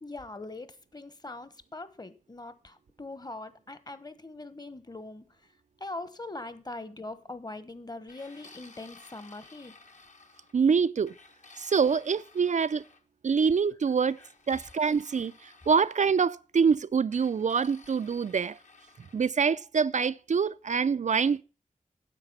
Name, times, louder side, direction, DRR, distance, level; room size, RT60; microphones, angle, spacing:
voice 1, 0.0-9.7, left 2 dB, 30° left, 1.2 m, -42 dB
sound 1, 8.1-10.6 11.1-13.0 14.1-16.1 17.1-19.2, left 3 dB, 60° left, 1.7 m, -55 dB
voice 2, 10.5-11.1 11.6-12.8 13.2-14.2 14.5-18.6 19.1-21.4, right 6 dB, 60° right, 0.4 m, -25 dB
9.9 x 7.6 x 5.6 m
wide cardioid pair, 80°, 14 cm